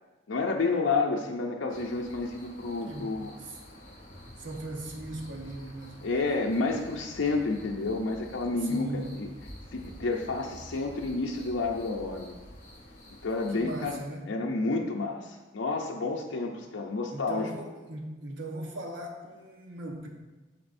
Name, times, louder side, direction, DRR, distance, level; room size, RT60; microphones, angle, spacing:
voice 1, 0.3-3.3 6.0-9.3 9.7-12.4 13.2-14.0 14.3-17.5, left 3 dB, 90° left, -1 dB, 0.6 m, -30 dB
sound 1, 1.7-14.0, equal, 40° left, 1.8 m, -49 dB
voice 2, 2.9-3.6 4.4-6.2 8.6-9.2 13.5-14.3 17.1-20.1, right 1 dB, 75° right, 1 dB, 1.1 m, -39 dB
9.5 x 6.7 x 2.6 m, 1.2 s
head